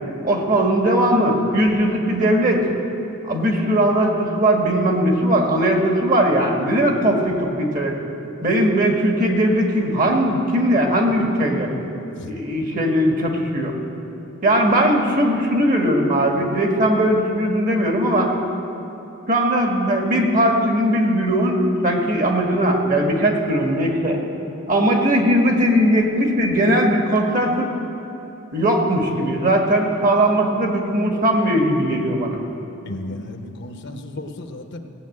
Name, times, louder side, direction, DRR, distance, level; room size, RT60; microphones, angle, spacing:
voice 1, 0.2-2.7 3.2-7.9 8.4-11.7 12.2-13.8 14.4-18.3 19.3-24.2 24.7-27.7 28.5-32.4, right 1 dB, 40° right, 2 dB, 1.7 m, -19 dB
voice 2, 32.9-34.8, left 2 dB, 60° left, 6 dB, 0.9 m, -34 dB
17.0 x 7.1 x 8.5 m, 2.9 s
head